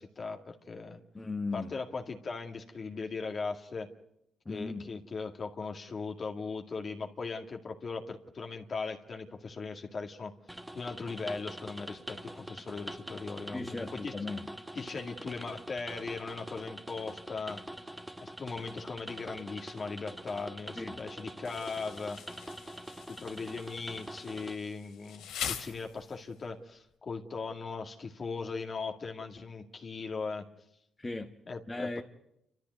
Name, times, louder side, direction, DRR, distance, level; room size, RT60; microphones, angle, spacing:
voice 1, 0.0-1.0 1.5-3.9 4.5-10.3 10.7-14.1 14.8-17.6 18.2-22.2 23.1-30.4 31.5-32.0, left 4 dB, 40° left, 2.1 m, -39 dB
voice 2, 1.1-1.7 4.4-4.9 13.5-14.5 20.7-21.0 31.0-31.3 31.7-32.0, left 3 dB, 20° left, 1.4 m, -37 dB
sound 1, 10.5-24.6, right 1 dB, 5° right, 1.4 m, -45 dB
Insect, 21.4-26.4, left 8 dB, 85° left, 2.5 m, -43 dB
28.5 x 13.5 x 9.3 m
cardioid pair, 85°, 0 cm